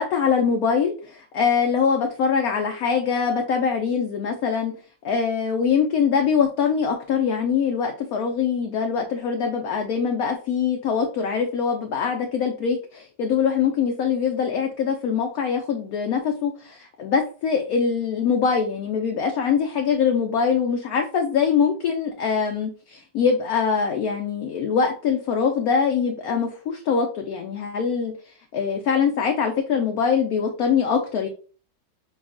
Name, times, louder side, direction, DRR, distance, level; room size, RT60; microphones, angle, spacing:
voice 1, 0.0-4.7 5.0-28.1 28.5-31.3, left 6 dB, 70° left, 4 dB, 0.9 m, -23 dB
6.0 x 2.3 x 2.4 m, 0.39 s
omnidirectional pair, 2.0 m